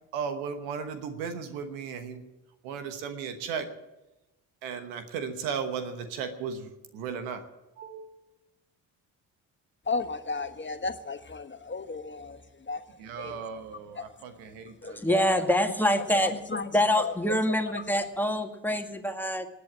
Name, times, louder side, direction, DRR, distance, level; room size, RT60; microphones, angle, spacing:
voice 1, 0.1-2.2 2.6-3.7 4.6-7.4 7.8-8.2 13.0-15.3, right 6 dB, 90° right, 8 dB, 1.2 m, -36 dB
voice 2, 9.8-13.4 13.9-14.1 14.8-15.7 16.1-17.2 17.5-17.8, left 4 dB, 30° left, 9 dB, 1.3 m, -34 dB
voice 3, 15.0-16.3 16.7-19.5, equal, 5° left, 5 dB, 2.0 m, -25 dB
19.0 x 8.3 x 8.7 m, 1.0 s
hypercardioid pair, 40°, 38 cm